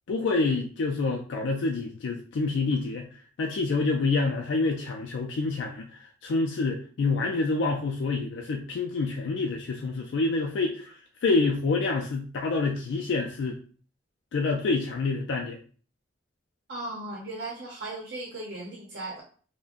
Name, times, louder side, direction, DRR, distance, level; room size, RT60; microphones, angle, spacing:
voice 1, 0.1-3.1 3.4-10.9 11.2-13.6 14.3-15.6, left 3 dB, 85° left, 1 dB, 0.4 m, -27 dB
voice 2, 16.7-19.2, right 2 dB, 65° right, -2 dB, 0.7 m, -37 dB
2.5 x 2.1 x 3.5 m, 0.42 s
head